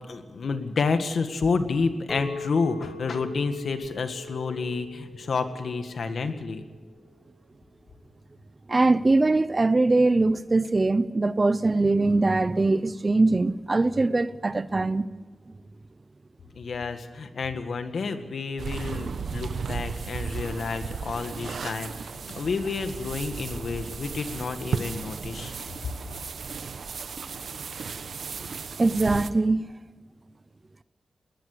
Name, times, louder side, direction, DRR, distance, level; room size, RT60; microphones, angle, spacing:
voice 1, 0.1-6.7 16.6-25.5, left 4 dB, 75° left, 1.8 m, -29 dB
Chink clink, 2.1-6.4 6.8-7.2, left 4 dB, 15° left, 2.8 m, -41 dB
voice 2, 8.7-15.1 28.8-29.7, right 2 dB, 30° right, 0.6 m, -22 dB
sound 1, 18.6-29.3, right 5 dB, 85° right, 1.1 m, -35 dB
21.0 x 19.0 x 6.8 m
wide cardioid pair, 150°, 0 cm